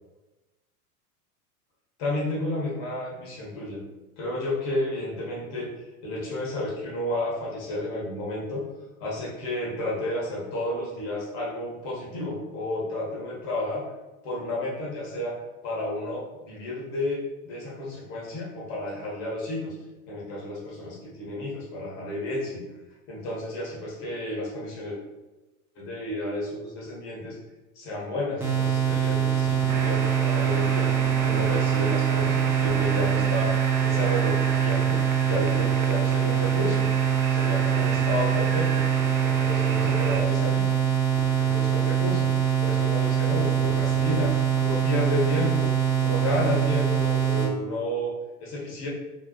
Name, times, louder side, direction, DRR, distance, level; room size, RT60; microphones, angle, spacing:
voice 1, 2.0-3.8 4.2-5.7 6.0-8.7 9.0-13.8 14.2-15.4 15.6-19.7 20.1-22.6 23.1-25.0 25.7-27.4 27.7-33.5 33.8-36.9 37.3-38.9 39.2-40.7 41.4-42.3 42.6-45.7 46.0-48.1 48.4-48.9, left 1 dB, 45° left, -5 dB, 1.4 m, -31 dB
sound 1, 28.4-47.5, right 9 dB, 5° right, 0.5 m, -23 dB
sound 2, 29.7-40.2, right 5 dB, 60° right, 0.5 m, -35 dB
3.5 x 2.3 x 2.4 m, 1.1 s
figure-of-eight pair, 90°, 45 cm